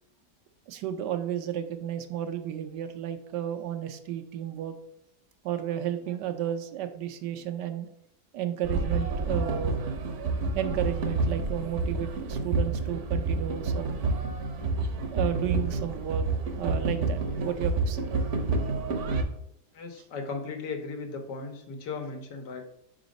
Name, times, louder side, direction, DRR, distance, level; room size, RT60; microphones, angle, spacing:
voice 1, 0.7-4.8 5.4-7.9 8.3-9.8 10.5-14.2 15.1-16.3 16.6-18.1, right 10 dB, 90° right, 8 dB, 1.3 m, -33 dB
sound 1, 8.6-19.2, right 3 dB, 55° right, 0.9 m, -29 dB
voice 2, 19.7-22.7, left 4 dB, 90° left, 4 dB, 1.6 m, -36 dB
4.9 x 3.9 x 5.1 m, 0.73 s
omnidirectional pair, 1.8 m